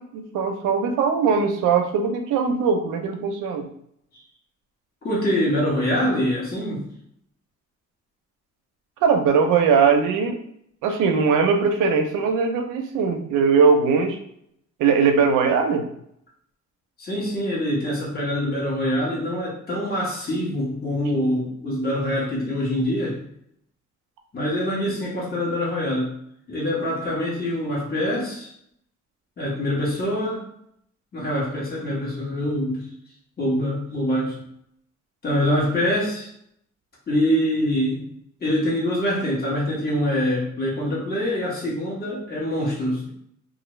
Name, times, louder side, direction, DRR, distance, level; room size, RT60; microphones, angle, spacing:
voice 1, 0.0-3.7 9.0-10.4 10.8-14.2 14.8-15.9, right 5 dB, 90° right, 4 dB, 0.6 m, -20 dB
voice 2, 5.0-6.9 17.0-23.2 24.3-26.1 26.5-28.5 29.4-30.4 31.1-32.9 33.4-34.4 35.2-36.3 37.1-38.0 38.4-43.1, left 1 dB, 30° left, -6 dB, 1.1 m, -24 dB
2.5 x 2.4 x 3.1 m, 0.71 s
cardioid pair, 90°, 30 cm